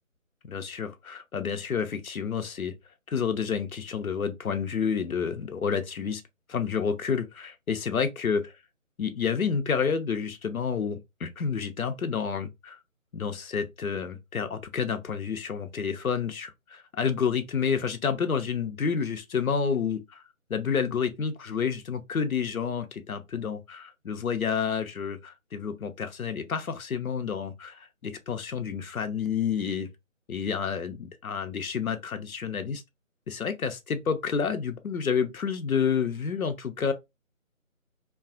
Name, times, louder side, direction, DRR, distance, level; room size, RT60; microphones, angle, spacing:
voice 1, 0.5-2.7 3.1-6.2 6.5-8.4 9.0-12.8 13.1-20.2 20.5-29.9 30.3-32.8 33.3-36.9, left 6 dB, 85° left, 0.7 m, -29 dB
2.8 x 2.3 x 2.4 m
figure-of-eight pair, 155°, 41 cm